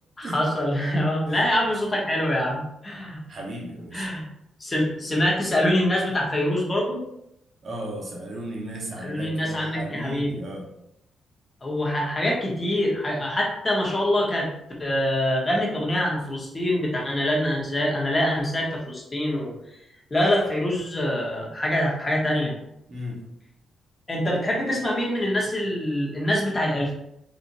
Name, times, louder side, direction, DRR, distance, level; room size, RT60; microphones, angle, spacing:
voice 1, 0.2-3.2 3.9-4.3 4.6-7.0 9.0-10.4 11.6-14.5 14.8-19.8 20.1-22.5 24.1-26.9, left 1 dB, 20° left, -3 dB, 1.1 m, -25 dB
voice 2, 3.3-4.1 7.6-10.7 22.9-23.2, equal, 45° right, -2 dB, 1.1 m, -35 dB
4.1 x 2.6 x 2.7 m, 0.80 s
cardioid pair, 105°, 0 cm